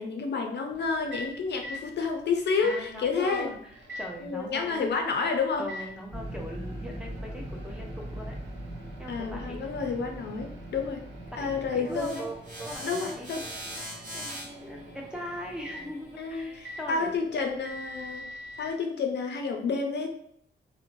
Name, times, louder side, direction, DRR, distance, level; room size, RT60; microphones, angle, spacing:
voice 1, 0.0-3.5 4.2-5.6 9.1-11.0 11.4-12.2 12.8-13.4 16.2-18.3 18.6-20.1, left 4 dB, 65° left, 4 dB, 0.4 m, -30 dB
Microwave oven, 0.7-18.7, equal, 75° right, 0.6 m, -46 dB
voice 2, 2.6-4.9 5.6-8.3 9.0-9.7 11.3-12.3 12.6-17.2, left 1 dB, 5° right, -2 dB, 0.5 m, -41 dB
sound 1, 6.1-12.1, right 1 dB, 30° right, 1.1 m, -40 dB
sound 2, 11.8-17.0, right 1 dB, 45° right, 0.8 m, -41 dB
2.5 x 2.1 x 3.0 m, 0.66 s
cardioid pair, 105°, 19 cm